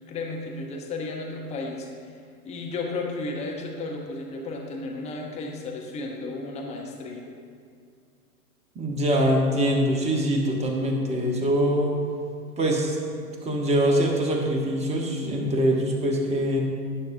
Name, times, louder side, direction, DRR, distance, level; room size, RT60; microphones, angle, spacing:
voice 1, 0.1-2.2 2.4-7.3, left 3 dB, 15° left, 0 dB, 0.9 m, -33 dB
voice 2, 8.7-11.9 12.6-13.0 13.4-16.6, equal, 15° right, 0 dB, 1.2 m, -23 dB
12.0 x 9.5 x 2.7 m, 2.3 s
hypercardioid pair, 120°, 47 cm